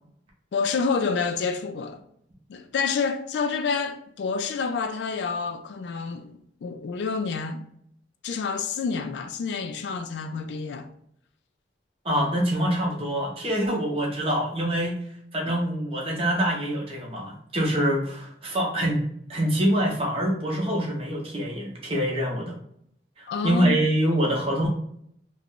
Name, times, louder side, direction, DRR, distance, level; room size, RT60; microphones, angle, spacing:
voice 1, 0.5-2.0 2.5-7.6 8.2-10.9 15.4-15.6 23.3-23.8, left 5 dB, 65° left, 0.3 m, -28 dB
voice 2, 12.0-15.0 15.3-19.0 19.3-22.6 23.2-24.7, right 1 dB, 30° right, 0.6 m, -25 dB
2.4 x 2.1 x 3.6 m
head